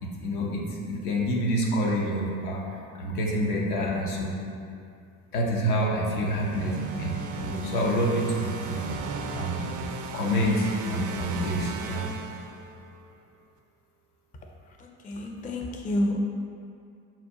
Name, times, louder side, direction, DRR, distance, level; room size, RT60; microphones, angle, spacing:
voice 1, 0.0-2.6 2.9-4.3 5.3-8.9 9.3-9.6 10.1-12.0, equal, 85° left, -3 dB, 0.7 m, -27 dB
sound 1, 6.3-13.0, right 4 dB, 45° right, 0.5 m, -37 dB
voice 2, 14.8-16.2, left 1 dB, 20° left, 1 dB, 0.4 m, -29 dB
5.6 x 2.2 x 2.7 m, 2.3 s
hypercardioid pair, 55°, 43 cm